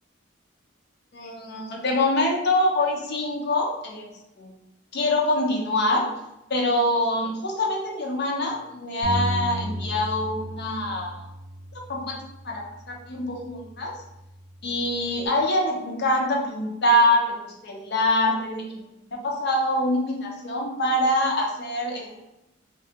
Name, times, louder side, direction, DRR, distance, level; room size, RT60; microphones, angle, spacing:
voice 1, 1.1-4.1 4.4-4.5 4.9-6.1 6.5-11.2 11.9-12.2 12.4-13.9 14.6-22.1, left 1 dB, 55° left, 0 dB, 0.5 m, -25 dB
Bass guitar, 9.0-15.3, right 1 dB, 75° right, 0.4 m, -35 dB
2.6 x 2.2 x 2.7 m, 0.89 s
head